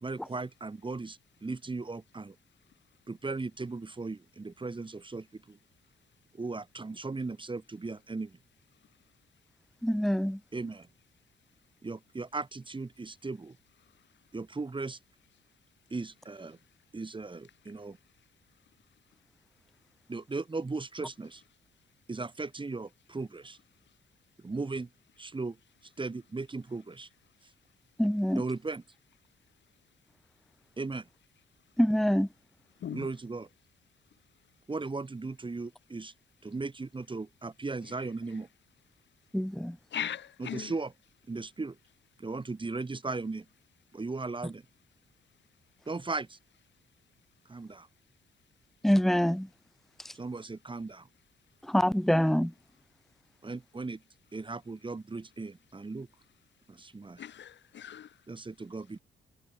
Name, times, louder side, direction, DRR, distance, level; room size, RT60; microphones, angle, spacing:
voice 1, 0.0-2.3 3.1-5.6 6.3-8.4 10.5-10.9 11.8-13.6 14.3-15.0 15.9-16.6 16.9-18.0 20.1-21.4 22.1-23.6 24.4-24.9 25.2-25.6 26.0-27.1 28.3-28.8 30.8-31.1 32.9-33.5 34.7-36.1 36.4-38.5 40.4-40.9 41.3-41.8 42.2-43.4 43.9-44.6 45.9-46.4 47.5-47.9 50.1-51.1 53.4-54.0 54.3-56.1 56.7-57.2 58.3-59.0, right 3 dB, 25° right, 1.7 m, -37 dB
voice 2, 9.8-10.4 28.0-28.4 31.8-32.3 39.3-39.8 48.8-49.5 50.0-50.1 51.6-52.5, equal, ahead, 1.5 m, -25 dB
voice 3, 39.9-40.7 57.2-58.1, left 9 dB, 65° left, 4.8 m, -38 dB
supercardioid pair, 60°, 20 cm